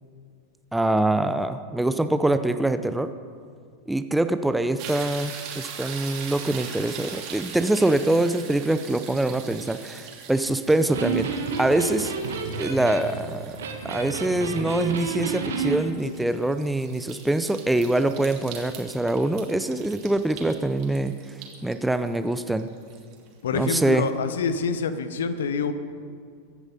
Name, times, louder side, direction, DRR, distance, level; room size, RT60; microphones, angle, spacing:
voice 1, 0.7-3.1 3.9-12.1 12.6-13.6 13.8-21.2 21.6-22.7 23.5-24.1, right 1 dB, 5° right, 10 dB, 0.6 m, -24 dB
sound 1, 4.8-23.8 24.3-24.4, right 7 dB, 40° right, 2.9 m, -42 dB
Electric guitar, 10.8-15.8, right 6 dB, 65° right, 2.0 m, -30 dB
voice 2, 23.4-25.7, left 5 dB, 60° left, 11 dB, 1.1 m, -26 dB
24.0 x 10.0 x 5.3 m, 2.2 s
figure-of-eight pair, 90°, 0 cm